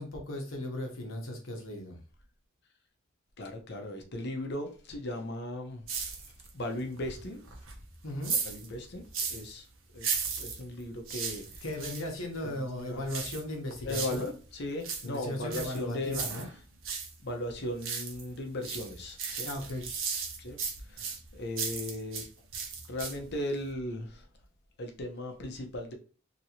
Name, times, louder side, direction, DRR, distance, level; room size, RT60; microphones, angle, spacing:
voice 1, 0.0-2.0 8.0-8.4 11.6-14.3 15.0-16.4 19.4-19.9, left 1 dB, 85° left, 1.1 m, -37 dB
voice 2, 3.4-5.8 6.5-7.5 8.4-9.7 9.9-10.1 10.4-11.6 12.5-13.0 13.8-16.3 17.2-19.5 20.4-20.6 20.9-22.3 22.9-24.3 24.8-25.9, left 1 dB, 55° left, 0.8 m, -37 dB
Sweeping Beans, 5.9-6.6 7.0-9.5 10.0-12.1 13.1-14.3 14.6-17.1 17.5-18.3 18.6-22.3 22.5-23.4 23.7-23.8, right 6 dB, 70° right, 0.8 m, -36 dB
3.0 x 2.7 x 2.9 m
head